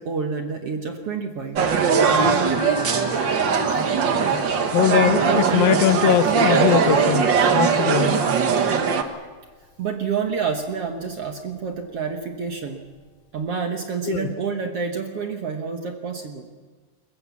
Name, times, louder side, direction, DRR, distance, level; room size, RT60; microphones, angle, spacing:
voice 1, 0.0-1.6 9.8-12.9 13.3-16.5, right 5 dB, 55° right, 4 dB, 1.8 m, -28 dB
sound 1, 1.5-9.0, right 6 dB, 75° right, 1.0 m, -20 dB
sound 2, 2.5-8.8 9.2-10.3 10.7-12.1 12.5-12.6 13.1-13.2 13.4-13.5, left 9 dB, 60° left, 5.3 m, -42 dB
voice 2, 4.7-7.3 7.5-8.2 14.1-14.3, left 10 dB, 80° left, 12 dB, 2.5 m, -21 dB
22.5 x 21.0 x 7.2 m, 1.4 s
omnidirectional pair, 4.1 m